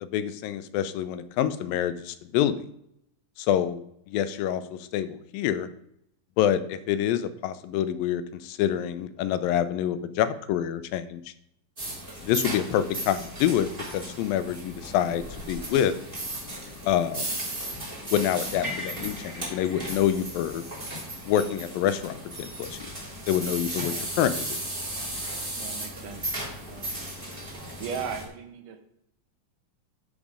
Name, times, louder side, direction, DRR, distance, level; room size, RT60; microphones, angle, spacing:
voice 1, 0.0-2.7 3.4-3.8 4.1-5.7 6.4-11.2 12.2-15.9 16.9-17.3 18.1-20.6 21.3-22.8 23.3-24.6, left 10 dB, 85° left, 13 dB, 2.4 m, -27 dB
sound 1, 11.8-28.2, right 1 dB, 15° right, 2.6 m, -35 dB
voice 2, 23.7-24.1 25.6-26.3 26.7-27.0 27.4-28.8, right 6 dB, 70° right, 7 dB, 2.5 m, -38 dB
12.5 x 5.0 x 4.9 m, 0.75 s
omnidirectional pair, 4.0 m